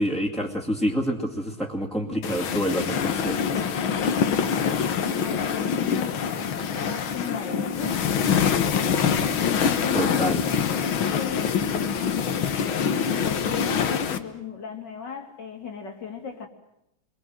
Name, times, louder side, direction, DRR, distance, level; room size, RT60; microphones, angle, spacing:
voice 1, 0.0-3.6 9.9-10.4, equal, ahead, -3 dB, 2.1 m, -27 dB
sound 1, 2.2-14.2, left 7 dB, 80° left, 2.1 m, -25 dB
voice 2, 4.3-11.6 11.9-16.5, left 6 dB, 60° left, 4 dB, 3.1 m, -37 dB
29.5 x 22.5 x 7.8 m, 0.83 s
omnidirectional pair, 2.2 m